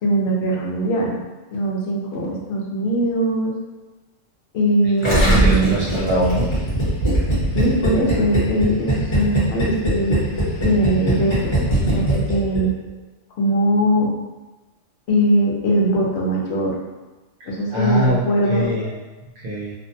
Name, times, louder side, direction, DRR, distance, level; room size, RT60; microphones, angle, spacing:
voice 1, 0.0-1.1 1.5-3.5 4.5-5.8 7.5-10.2 10.6-12.7 13.4-14.1 15.1-16.7 17.4-18.7, right 1 dB, 65° left, -2 dB, 0.8 m, -21 dB
Gurgling, 5.0-12.6 12.9-13.0, right 1 dB, 30° left, 0.8 m, -20 dB
voice 2, 5.0-6.5 17.4-18.2 18.5-18.9 19.4-19.7, equal, 75° right, -5 dB, 0.9 m, -23 dB
2.5 x 2.1 x 2.6 m, 1.1 s
omnidirectional pair, 1.3 m